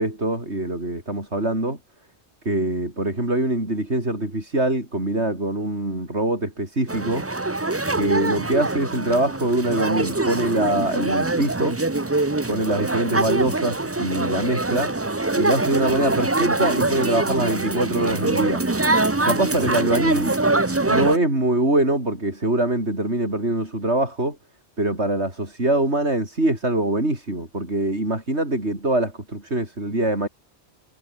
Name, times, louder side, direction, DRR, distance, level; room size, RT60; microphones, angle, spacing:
voice 1, 0.0-1.8 2.5-7.3 7.9-11.8 12.5-14.9 15.4-18.6 19.2-20.4 20.9-24.4 24.8-30.3, right 1 dB, 80° right, 6.8 m, -23 dB
sound 1, 6.9-21.2, right 2 dB, 15° right, 0.7 m, -24 dB
omnidirectional pair, 1.1 m